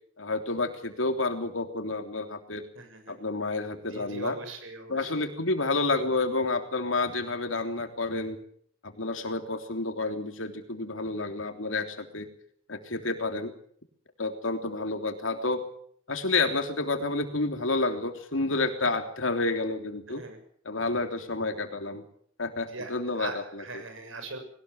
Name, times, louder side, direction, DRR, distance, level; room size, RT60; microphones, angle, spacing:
voice 1, 0.2-2.6 3.1-4.4 4.9-8.4 8.8-12.3 12.7-13.5 14.2-15.6 16.1-20.2 20.6-22.0 22.4-23.8, left 3 dB, 80° left, 6 dB, 3.3 m, -30 dB
voice 2, 2.8-3.2 3.9-5.2 20.1-20.4 22.7-24.4, right 3 dB, 90° right, 7 dB, 7.0 m, -40 dB
21.5 x 19.0 x 8.2 m, 0.64 s
head